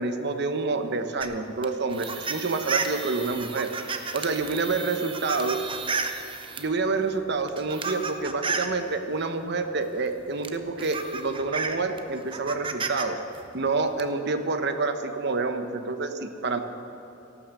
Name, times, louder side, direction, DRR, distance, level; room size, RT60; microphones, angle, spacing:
voice 1, 0.0-3.7 4.1-5.6 6.6-13.2 13.5-16.6, right 3 dB, 60° right, 8 dB, 1.0 m, -28 dB
sound 1, 1.2-6.7 7.4-8.8 10.0-10.1 10.4-13.0 13.3-14.0, right 4 dB, 25° right, 0.8 m, -32 dB
14.0 x 12.0 x 6.7 m, 3.0 s
head